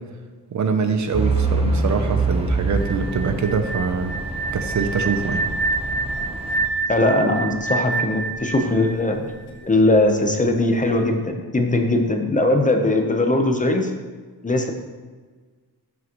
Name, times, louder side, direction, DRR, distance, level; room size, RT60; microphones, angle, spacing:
voice 1, 0.5-4.2 4.5-5.5, right 5 dB, 45° right, 7 dB, 0.6 m, -24 dB
Truck / Idling, 1.1-6.7, right 3 dB, 15° right, 0.8 m, -25 dB
sound 1, 2.8-9.7, right 3 dB, 75° left, 1.1 m, -27 dB
voice 2, 6.9-9.3 9.7-13.9 14.4-14.7, left 2 dB, 20° left, 3 dB, 0.8 m, -20 dB
12.5 x 6.2 x 3.0 m, 1.4 s
wide cardioid pair, 155°, 39 cm